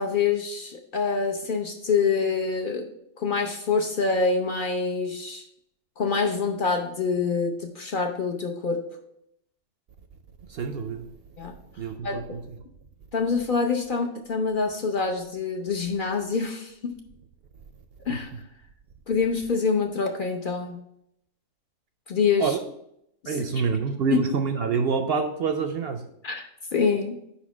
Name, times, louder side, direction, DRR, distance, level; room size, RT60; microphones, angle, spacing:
voice 1, 0.0-2.9 3.2-5.4 6.0-8.8 11.4-11.5 12.0-12.2 13.1-16.9 18.1-18.3 19.1-20.8 22.1-22.6 23.2-23.4 26.2-27.2, left 5 dB, 50° left, 3 dB, 0.7 m, -26 dB
voice 2, 10.5-11.1 11.8-12.4 18.1-18.2 22.4-22.6 23.3-26.0, right 5 dB, 65° right, 7 dB, 0.7 m, -26 dB
5.0 x 4.3 x 5.9 m, 0.76 s
omnidirectional pair, 1.3 m